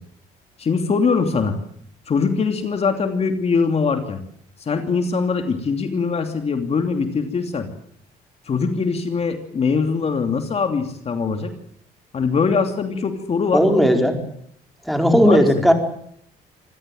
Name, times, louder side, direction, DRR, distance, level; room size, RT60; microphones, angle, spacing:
voice 1, 0.6-1.6 2.1-4.2 4.6-7.7 8.5-11.5 12.1-13.6 15.2-15.5, left 5 dB, 40° left, 6 dB, 2.9 m, -22 dB
voice 2, 13.5-14.2 14.9-15.7, equal, ahead, 4 dB, 4.7 m, -15 dB
26.5 x 16.5 x 9.2 m, 0.68 s
cardioid pair, 110°, 17 cm